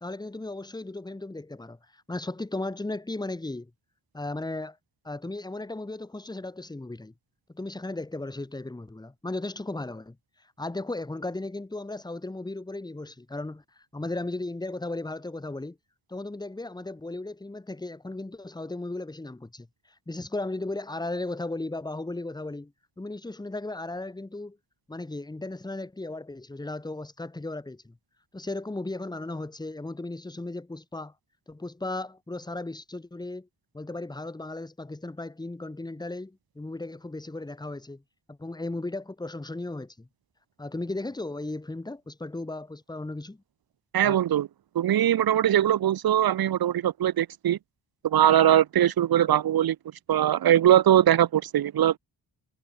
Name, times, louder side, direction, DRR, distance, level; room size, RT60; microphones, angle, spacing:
voice 1, 0.0-3.7 4.1-4.8 5.0-7.1 7.5-10.2 10.6-15.8 16.1-19.7 20.1-24.6 24.9-28.0 28.3-31.1 31.5-33.5 33.7-38.0 38.3-40.1 40.6-43.4 44.0-44.2, left 2 dB, 10° left, 0.7 m, -36 dB
voice 2, 43.9-44.5 44.7-47.6 48.0-49.8 50.1-52.0, right 11 dB, 50° right, 0.5 m, -21 dB
cardioid pair, 45°, 50 cm